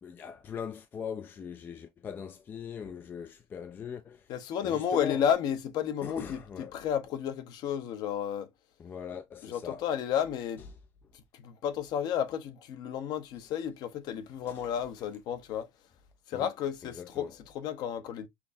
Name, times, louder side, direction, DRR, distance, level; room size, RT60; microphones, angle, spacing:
voice 1, 0.0-4.3 4.6-5.2 6.0-6.8 8.8-9.8 16.3-16.5 16.9-17.3, left 7 dB, 20° left, 0.3 m, -40 dB
voice 2, 4.3-8.5 9.4-10.6 11.1-15.7 16.3-18.3, left 9 dB, 45° left, 0.7 m, -32 dB
5.8 x 2.0 x 2.5 m
supercardioid pair, 135°, 10 cm